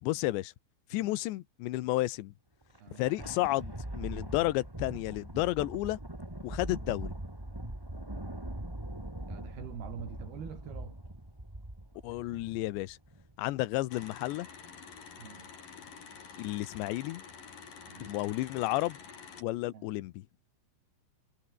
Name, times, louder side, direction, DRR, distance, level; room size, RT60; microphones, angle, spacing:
voice 1, 0.0-0.5 0.9-2.3 3.0-6.0 6.4-7.1 12.0-13.0 13.4-14.5 16.4-17.2 18.0-19.0 19.4-20.2, left 18 dB, 75° left, 2.9 m, -32 dB
Thunder, 2.6-13.3, right 1 dB, 10° right, 1.5 m, -42 dB
voice 2, 2.8-3.1 9.3-11.0 15.2-15.5 17.9-18.2 19.7-19.9, right 7 dB, 50° right, 5.3 m, -45 dB
sound 1, 13.9-19.4, left 6 dB, 45° left, 5.3 m, -49 dB
omnidirectional pair, 5.9 m